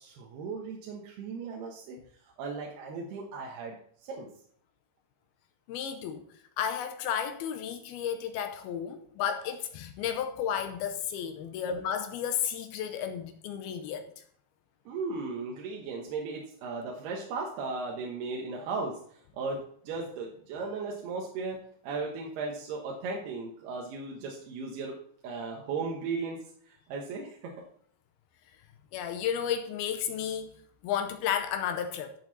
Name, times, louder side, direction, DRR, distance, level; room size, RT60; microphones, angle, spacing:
voice 1, 0.0-2.0 2.2-3.8 4.0-4.3 14.9-25.0 25.2-27.5, right 4 dB, 70° right, 2.9 m, -36 dB
voice 2, 5.7-6.2 6.6-14.1 28.9-30.5 30.8-32.1, left 8 dB, 80° left, 2.2 m, -32 dB
13.5 x 7.1 x 4.1 m
omnidirectional pair, 5.5 m